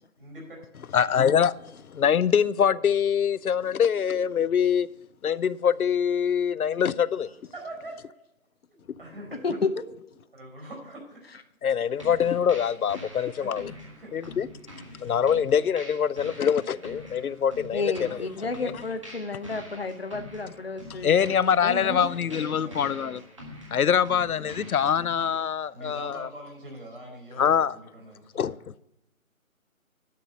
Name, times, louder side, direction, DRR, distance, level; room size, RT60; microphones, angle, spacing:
voice 1, 0.2-0.6 7.5-8.0 8.7-9.4 10.3-11.2 12.1-12.2 13.4-13.5 13.9-14.1 21.8-23.2 24.1-24.5 25.7-28.6, right 1 dB, 40° right, 4.9 m, -43 dB
voice 2, 0.9-4.9 5.2-7.3 11.6-13.7 14.1-14.5 15.0-18.1 18.6-18.7 21.0-23.2 23.7-26.3 27.4-27.8 28.3-28.7, left 8 dB, 80° left, 0.6 m, -24 dB
sound 1, 12.0-25.4, left 1 dB, 20° right, 1.5 m, -45 dB
voice 3, 17.7-22.1, left 3 dB, 45° left, 0.9 m, -31 dB
10.5 x 6.2 x 8.1 m
figure-of-eight pair, 175°, 43 cm